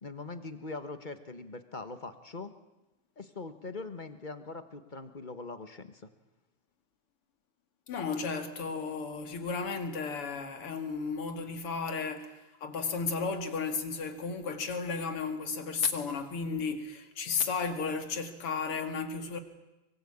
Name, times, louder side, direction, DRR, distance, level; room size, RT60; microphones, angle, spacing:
voice 1, 0.0-2.5 3.2-6.1, left 3 dB, 25° left, 1.1 m, -42 dB
voice 2, 7.9-19.4, left 5 dB, 85° left, 3.1 m, -34 dB
24.0 x 23.5 x 8.7 m
omnidirectional pair, 2.4 m